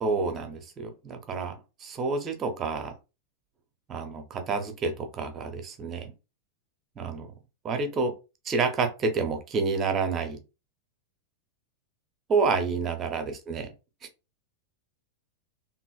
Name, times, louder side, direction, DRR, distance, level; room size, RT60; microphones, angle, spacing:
voice 1, 0.0-2.9 3.9-6.1 7.0-7.3 7.6-8.1 8.4-10.4 12.3-13.7, right 4 dB, 25° right, 0.7 m, -29 dB
2.8 x 2.8 x 2.4 m
figure-of-eight pair, 90°, 0 cm